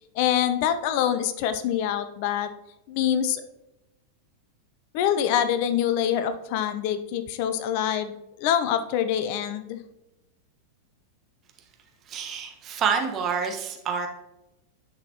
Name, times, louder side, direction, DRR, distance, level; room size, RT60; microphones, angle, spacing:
voice 1, 0.1-2.5 2.9-3.4 4.9-8.1 8.4-9.8, left 9 dB, 45° left, 10 dB, 0.5 m, -25 dB
voice 2, 12.1-14.1, right 6 dB, 30° right, 3 dB, 1.2 m, -27 dB
10.5 x 5.8 x 2.9 m, 0.96 s
figure-of-eight pair, 90°, 0 cm